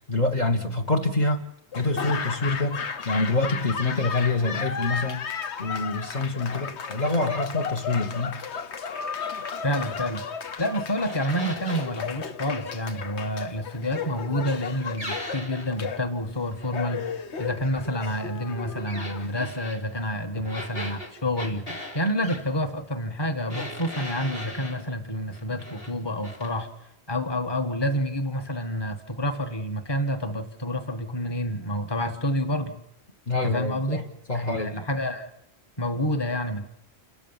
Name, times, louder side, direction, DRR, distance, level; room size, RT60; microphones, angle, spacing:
voice 1, 0.1-1.4 1.7-5.2 5.6-8.4 33.3-34.0 34.3-34.8, left 2 dB, 40° left, 5 dB, 1.6 m, -26 dB
Laughter / Applause, 1.7-19.8, left 6 dB, 85° left, 1.3 m, -34 dB
voice 2, 9.6-10.2 10.6-26.7 27.1-32.7 33.4-34.0 34.3-35.3 35.8-36.6, equal, 25° left, 5 dB, 1.5 m, -28 dB
sound 1, 11.1-11.9 15.0-15.8 18.9-19.8 20.4-22.4 23.5-24.8 25.3-25.9 26.2-26.5, left 1 dB, 65° left, 3.7 m, -38 dB
29.0 x 13.5 x 7.4 m, 0.79 s
omnidirectional pair, 1.1 m